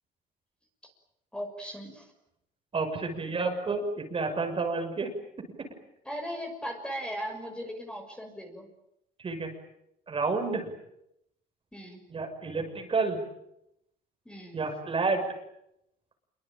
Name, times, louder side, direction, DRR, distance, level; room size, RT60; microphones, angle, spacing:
voice 1, 1.3-2.1 6.0-8.7 11.7-12.0 14.2-14.6, equal, 5° left, 4 dB, 6.3 m, -38 dB
voice 2, 2.7-5.1 5.4-5.7 9.2-9.5 10.1-10.7 12.1-13.2 14.5-15.3, right 3 dB, 30° right, 5 dB, 6.4 m, -30 dB
27.0 x 24.0 x 9.0 m, 0.82 s
cardioid pair, 110°, 17 cm